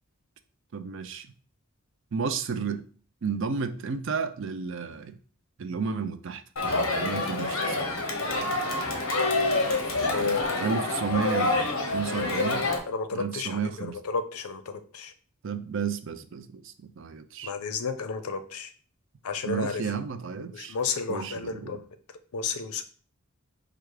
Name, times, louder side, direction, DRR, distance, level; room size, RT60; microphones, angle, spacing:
voice 1, 0.7-1.3 2.1-2.8 3.2-5.2 5.6-7.8 10.0-12.6 13.1-14.0 15.4-17.5 19.4-20.8 21.1-21.8, right 5 dB, 60° right, 10 dB, 0.4 m, -32 dB
Crowd, 6.6-12.8, left 2 dB, 65° left, 0.9 m, -27 dB
voice 2, 10.1-10.7 12.9-15.1 17.4-18.7 19.2-19.8 20.4-21.8 22.3-22.8, left 5 dB, 90° left, 10 dB, 0.6 m, -32 dB
4.7 x 2.4 x 4.7 m, 0.43 s
head